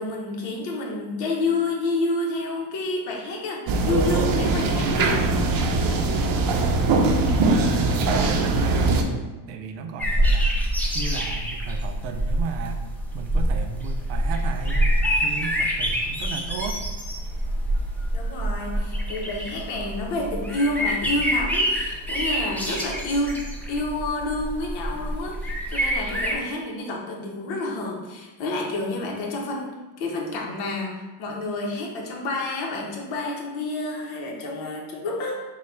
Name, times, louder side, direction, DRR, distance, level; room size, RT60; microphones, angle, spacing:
voice 1, 0.0-5.2 18.1-23.4 23.7-35.4, left 2 dB, 80° left, -1 dB, 1.0 m, -29 dB
sound 1, 3.7-9.0, right 3 dB, 50° right, 0.6 m, -21 dB
voice 2, 6.5-9.2 9.5-10.5 10.9-12.9 13.1-14.9 15.2-16.8, right 5 dB, 85° right, 6 dB, 0.6 m, -35 dB
sound 2, 10.0-26.4, equal, 5° left, 0.4 m, -26 dB
3.9 x 2.3 x 4.3 m, 1.2 s
cardioid pair, 125°, 45 cm